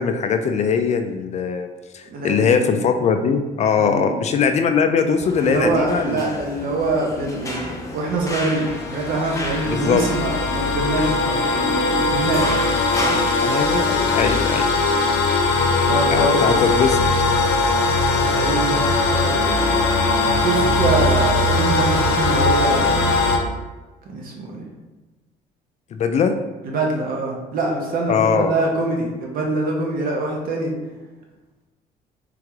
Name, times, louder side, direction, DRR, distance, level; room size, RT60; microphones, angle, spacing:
voice 1, 0.0-1.7 1.9-6.4 9.6-10.0 13.4-14.7 16.1-17.0 25.9-26.4 28.1-28.5, left 6 dB, 40° left, 7 dB, 0.4 m, -20 dB
voice 2, 2.1-2.8 3.8-4.1 5.4-12.6 13.0-13.2 15.9-16.6 18.2-19.8 20.4-23.2 24.0-24.7 26.6-30.7, right 2 dB, 55° right, 0 dB, 1.0 m, -24 dB
sound 1, 5.1-13.2, left 1 dB, 20° left, 0.8 m, -33 dB
sound 2, 8.1-23.4, left 3 dB, 90° left, 0.6 m, -20 dB
3.7 x 3.2 x 3.5 m, 1.2 s
cardioid pair, 110°, 17 cm